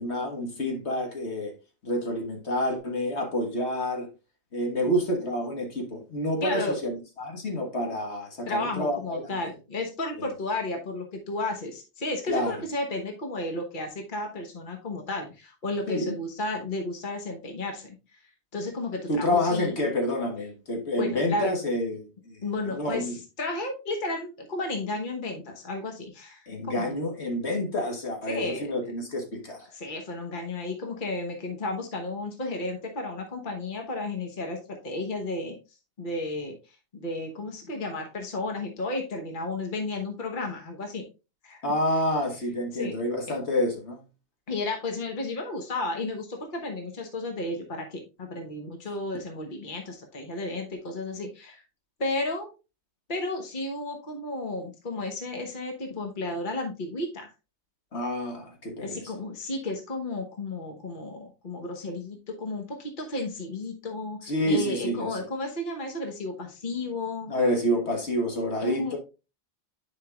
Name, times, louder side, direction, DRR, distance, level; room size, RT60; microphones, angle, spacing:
voice 1, 0.0-1.5 1.8-4.1 4.5-9.2 10.2-10.3 12.3-12.6 15.9-16.2 19.1-23.2 26.5-29.7 41.6-44.0 57.9-59.0 64.2-65.2 67.3-69.0, left 1 dB, 75° left, 1.8 m, -28 dB
voice 2, 6.4-6.8 8.5-18.2 18.5-19.7 21.0-21.5 22.4-27.0 28.3-28.7 29.7-35.6 36.0-41.1 41.4-41.6 42.7-43.0 44.5-51.6 52.0-52.5 53.1-57.3 58.8-67.3 68.6-69.0, left 2 dB, 50° left, 1.3 m, -33 dB
10.0 x 5.1 x 2.4 m
omnidirectional pair, 1.1 m